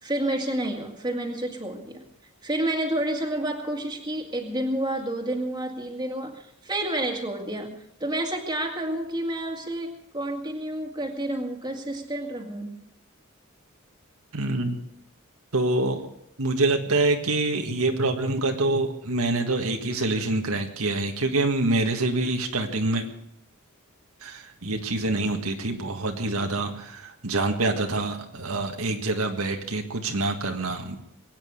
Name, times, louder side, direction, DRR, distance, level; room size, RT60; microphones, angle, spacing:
voice 1, 0.0-2.0 2.4-12.8, right 1 dB, 20° right, 3 dB, 2.1 m, -29 dB
voice 2, 14.3-14.8 15.5-16.0 16.4-23.0 24.2-31.0, right 2 dB, 85° right, 4 dB, 1.8 m, -26 dB
22.5 x 9.2 x 6.6 m, 0.73 s
head